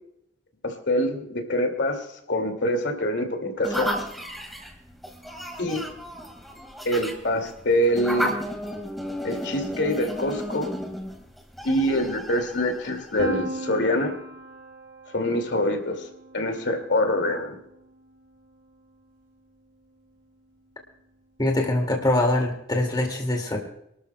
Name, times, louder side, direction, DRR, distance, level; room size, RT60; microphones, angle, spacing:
voice 1, 0.6-3.9 5.6-5.8 6.8-8.3 9.2-10.7 11.6-14.1 15.1-16.1 16.3-17.6, left 1 dB, 70° left, 5 dB, 2.3 m, -25 dB
sound 1, 3.6-13.2, equal, ahead, 1.8 m, -33 dB
Piano, 13.2-19.0, right 2 dB, 75° right, 2.0 m, -39 dB
voice 2, 21.4-23.6, left 1 dB, 20° left, 2 dB, 2.2 m, -23 dB
28.5 x 13.0 x 2.2 m, 0.77 s
head